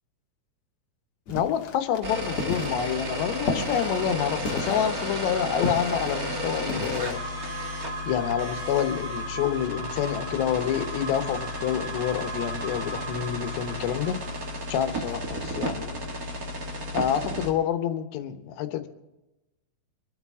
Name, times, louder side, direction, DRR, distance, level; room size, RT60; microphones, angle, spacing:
voice 1, 1.3-7.2 8.1-14.2 14.7-16.1 16.9-18.9, left 9 dB, 75° left, 8 dB, 3.1 m, -28 dB
sound 1, 1.3-7.1, left 3 dB, 55° left, 2.0 m, -34 dB
sound 2, 2.0-17.5, equal, 60° right, 0.9 m, -33 dB
sound 3, 7.1-14.8, right 2 dB, 35° left, 3.0 m, -38 dB
25.0 x 12.5 x 3.6 m, 0.99 s
omnidirectional pair, 5.0 m